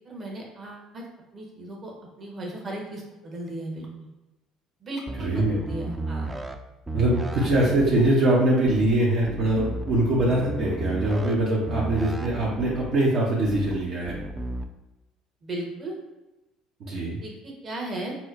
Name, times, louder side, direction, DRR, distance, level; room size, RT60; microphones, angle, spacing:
voice 1, 0.0-1.0 1.3-1.9 2.2-4.1 4.8-6.3 15.4-15.9 17.2-18.2, right 1 dB, 40° right, -2 dB, 1.0 m, -36 dB
sound 1, 5.1-6.6 6.9-8.1 8.7-8.9 9.3-11.4 11.7-12.9 13.5-13.7 14.1-14.6, right 2 dB, 20° right, 0.4 m, -33 dB
voice 2, 5.2-5.5 6.9-14.2 16.8-17.2, right 1 dB, 60° right, -5 dB, 0.7 m, -23 dB
4.1 x 2.1 x 2.5 m, 1.0 s
hypercardioid pair, 65°, 0 cm